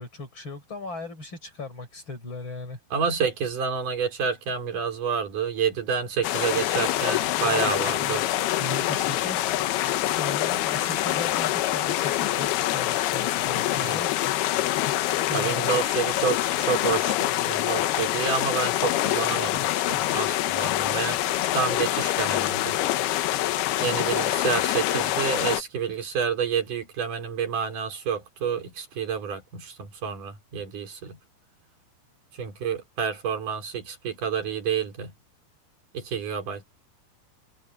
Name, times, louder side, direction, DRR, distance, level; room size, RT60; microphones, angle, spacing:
voice 1, 0.0-2.8 7.4-8.2 8.6-9.8 10.2-14.1 15.3-15.8 24.1-24.4, left 3 dB, 30° left, 5.8 m, -37 dB
voice 2, 2.9-8.2 13.8-14.0 15.3-21.2 21.5-22.8 23.8-31.2 32.4-35.1 35.9-36.6, right 6 dB, 50° right, 6.1 m, -29 dB
sound 1, 6.2-25.6, left 14 dB, 75° left, 2.8 m, -25 dB
omnidirectional pair, 4.8 m